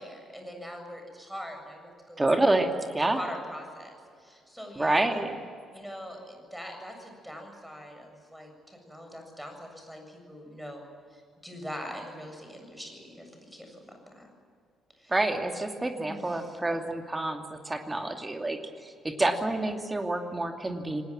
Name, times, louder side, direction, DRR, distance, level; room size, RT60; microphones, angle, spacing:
voice 1, 0.0-2.2 2.7-2.9 3.1-5.2 5.7-10.8 11.1-13.8 14.1-14.3 15.0-15.1 16.0-16.6, equal, ahead, 3 dB, 7.6 m, -42 dB
voice 2, 2.2-3.2 4.7-5.3 15.1-21.0, right 2 dB, 20° right, 5 dB, 2.6 m, -28 dB
28.5 x 20.0 x 7.5 m, 2.2 s
figure-of-eight pair, 45°, 0 cm